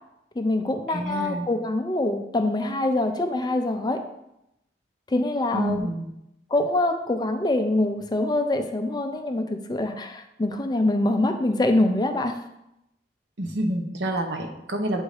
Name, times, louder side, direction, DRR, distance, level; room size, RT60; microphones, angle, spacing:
voice 1, 0.4-4.0 5.1-5.9 6.5-12.3, left 2 dB, 25° left, 6 dB, 0.5 m, -24 dB
voice 2, 0.9-1.5 5.5-6.1 13.4-15.0, right 1 dB, 85° right, 3 dB, 0.9 m, -28 dB
8.0 x 2.7 x 4.8 m, 0.85 s
head